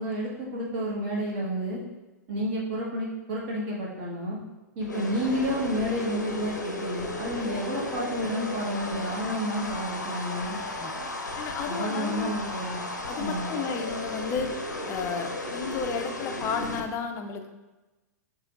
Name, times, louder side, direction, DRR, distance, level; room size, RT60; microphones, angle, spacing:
voice 1, 0.0-1.8 2.3-4.4 4.7-10.6 11.7-12.8 13.2-13.5, equal, 40° right, -5 dB, 1.5 m, -30 dB
sound 1, 4.8-16.8, left 2 dB, 90° left, 0.6 m, -34 dB
voice 2, 11.4-12.3 13.1-14.5 14.9-17.5, left 6 dB, 30° left, 6 dB, 0.4 m, -32 dB
6.4 x 3.0 x 2.5 m, 1.1 s
figure-of-eight pair, 105°, 9 cm